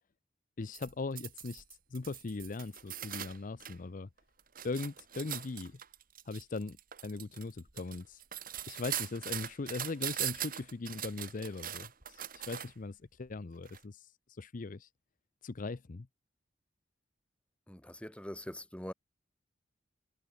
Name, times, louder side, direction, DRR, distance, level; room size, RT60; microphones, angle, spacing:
voice 1, 0.6-1.6 1.9-4.1 4.6-5.8 6.3-6.8 7.0-8.2 8.7-14.9 15.4-16.1, left 3 dB, 45° left, 0.6 m, -40 dB
sound 1, 0.7-3.8 4.2-12.9 13.7-13.8, right 11 dB, 50° right, 2.4 m, -41 dB
voice 2, 17.7-18.9, equal, 5° left, 2.1 m, -43 dB
head